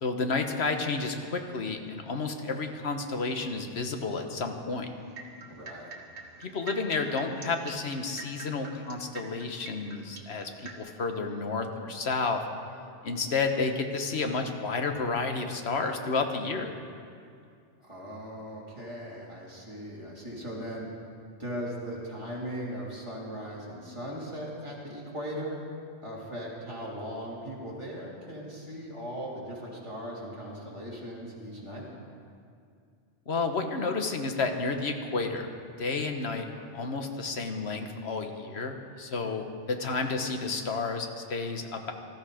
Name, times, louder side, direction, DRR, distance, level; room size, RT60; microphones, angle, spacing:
voice 1, 0.0-4.9 6.4-12.4 13.0-16.7 33.3-35.5 35.8-41.9, left 4 dB, 65° left, 5 dB, 1.4 m, -31 dB
sound 1, 5.0-10.7, right 5 dB, 70° right, 1.8 m, -44 dB
voice 2, 5.5-5.9 17.8-20.9 21.4-25.6 26.0-31.9, equal, 25° right, -5 dB, 3.3 m, -38 dB
19.0 x 14.0 x 5.0 m, 2.3 s
omnidirectional pair, 1.2 m